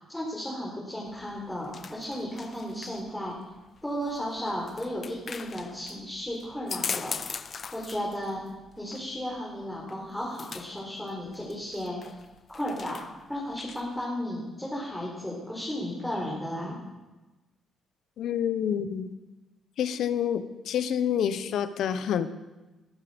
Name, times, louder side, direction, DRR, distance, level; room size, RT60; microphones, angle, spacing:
voice 1, 0.1-3.4 3.8-7.2 7.7-8.4 8.8-12.1 12.5-13.0 13.3-16.8, equal, 5° left, -4 dB, 4.5 m, -34 dB
sound 1, 1.1-14.0, left 6 dB, 45° left, 0.7 m, -41 dB
voice 2, 18.2-19.1 19.8-22.3, left 9 dB, 75° left, 12 dB, 1.0 m, -28 dB
21.5 x 12.0 x 5.3 m, 1.1 s
cardioid pair, 90°, 0 cm